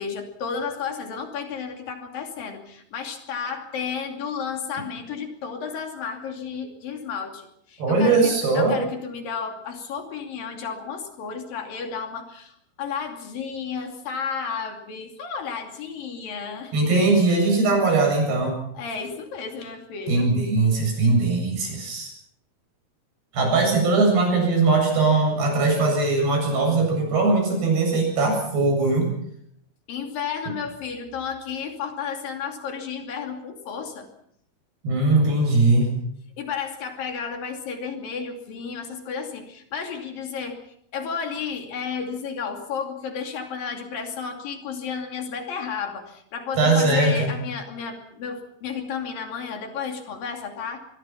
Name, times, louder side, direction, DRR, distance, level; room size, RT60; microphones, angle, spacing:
voice 1, 0.0-17.0 18.7-20.3 29.9-34.1 36.4-40.6 40.9-50.8, left 6 dB, 65° left, 4 dB, 4.4 m, -32 dB
voice 2, 7.8-8.8 16.7-18.6 20.1-22.1 23.3-29.1 34.8-35.9 46.6-47.3, right 3 dB, 90° right, 2 dB, 9.9 m, -20 dB
25.0 x 22.5 x 5.9 m, 0.70 s
omnidirectional pair, 4.5 m